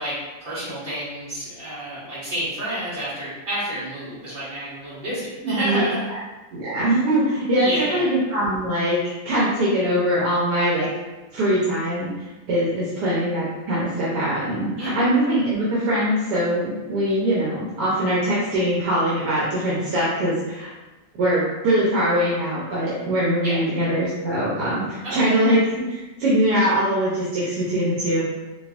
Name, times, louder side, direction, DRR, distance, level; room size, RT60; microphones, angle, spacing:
voice 1, 0.0-6.1 7.6-8.1 14.8-15.0 23.4-23.9 25.0-25.4, right 1 dB, 55° right, -11 dB, 2.1 m, -29 dB
voice 2, 5.4-5.8 6.5-9.0 9.2-10.9 11.3-20.7 21.2-28.2, right 1 dB, 85° right, -8 dB, 1.4 m, -22 dB
4.6 x 2.0 x 2.5 m, 1.1 s
omnidirectional pair, 1.7 m